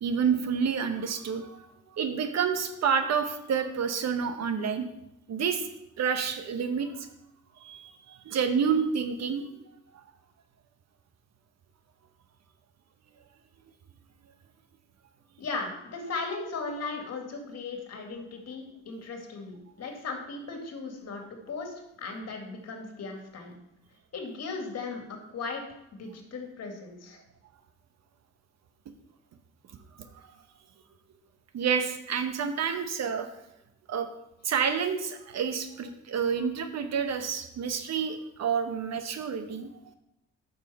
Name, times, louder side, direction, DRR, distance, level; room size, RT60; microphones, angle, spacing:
voice 1, 0.0-4.9 5.3-5.7 6.0-7.1 7.6-9.4 31.5-33.3 33.9-34.1 34.4-39.9, right 6 dB, 60° right, 8 dB, 1.0 m, -29 dB
voice 2, 15.4-21.2 21.5-23.5 24.1-25.6 26.0-27.2, left 4 dB, 55° left, 3 dB, 2.1 m, -37 dB
9.1 x 6.5 x 4.2 m, 0.83 s
cardioid pair, 90°, 30 cm